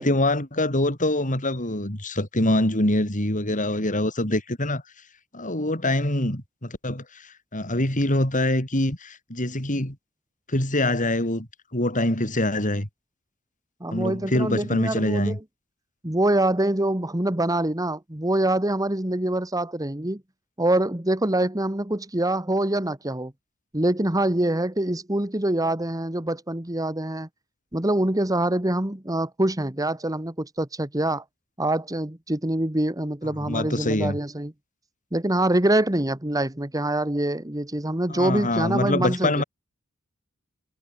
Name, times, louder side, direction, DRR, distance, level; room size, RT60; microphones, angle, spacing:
voice 1, 0.0-4.8 5.3-10.0 10.5-12.9 13.9-15.4 33.4-34.2 38.1-39.4, left 1 dB, 35° left, 5.5 m, -24 dB
voice 2, 13.8-15.3 16.0-20.2 20.6-23.3 23.7-27.3 27.7-31.2 31.6-34.5 35.1-39.4, right 1 dB, 15° right, 1.6 m, -25 dB
head